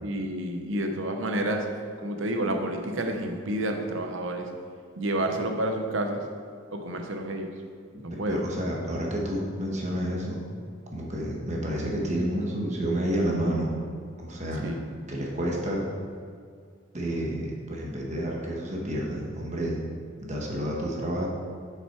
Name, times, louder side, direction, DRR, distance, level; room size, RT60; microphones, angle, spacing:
voice 1, 0.0-1.7 2.0-4.5 5.0-6.2 6.7-7.5 8.0-8.4 14.6-14.8, right 1 dB, 70° right, 4 dB, 0.9 m, -29 dB
voice 2, 7.9-10.4 10.9-13.7 14.2-14.7 15.1-15.8 16.9-19.8 20.2-21.3, right 1 dB, 35° right, -2 dB, 1.2 m, -30 dB
6.8 x 5.9 x 4.6 m, 2.1 s
head